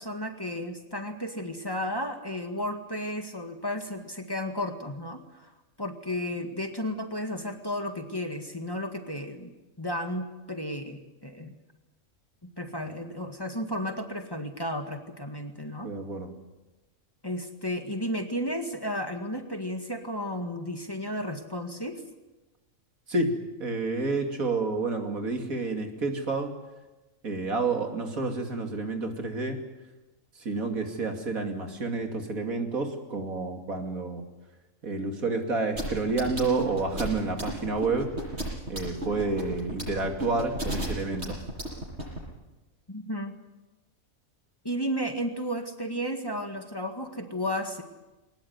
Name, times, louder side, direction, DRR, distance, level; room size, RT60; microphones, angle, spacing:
voice 1, 0.0-5.5 5.8-9.5 9.8-11.5 12.4-15.9 17.2-22.0 42.9-43.4 44.6-47.8, equal, 15° left, 5 dB, 1.9 m, -33 dB
voice 2, 15.8-16.3 23.1-26.5 27.2-29.6 30.4-34.2 34.8-38.1 38.7-41.4, right 3 dB, 80° right, 4 dB, 3.1 m, -29 dB
sound 1, 35.8-42.2, right 1 dB, 50° right, 7.9 m, -32 dB
21.5 x 19.5 x 9.5 m, 1.1 s
omnidirectional pair, 1.5 m